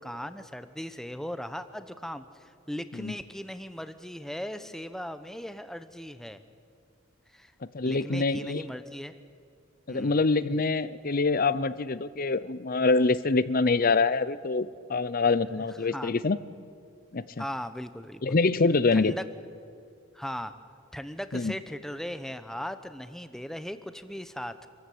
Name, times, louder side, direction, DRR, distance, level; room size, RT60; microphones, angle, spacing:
voice 1, 0.0-6.4 7.3-7.5 7.8-9.2 9.9-10.2 15.9-16.1 17.4-18.4 18.9-19.2 20.1-20.5 20.9-24.7, equal, ahead, 11 dB, 0.8 m, -38 dB
voice 2, 7.7-8.6 9.9-16.4 17.1-17.4 18.2-19.2 21.3-21.5, left 3 dB, 45° left, 16 dB, 0.7 m, -25 dB
27.0 x 14.0 x 8.6 m, 2.3 s
head